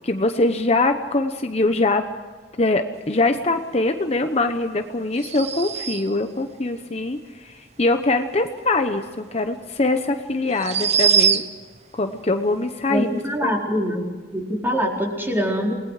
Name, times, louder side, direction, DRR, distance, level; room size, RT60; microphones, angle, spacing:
voice 1, 0.0-2.0 2.6-11.4 11.9-13.1 13.4-13.5, left 2 dB, 35° left, 7 dB, 1.0 m, -23 dB
sound 1, 5.2-6.3 9.3-9.4 10.5-11.8, right 7 dB, 40° right, 0.9 m, -22 dB
voice 2, 12.9-14.0 14.3-15.7, equal, 10° right, -1 dB, 4.3 m, -24 dB
29.0 x 20.0 x 5.0 m, 1.4 s
head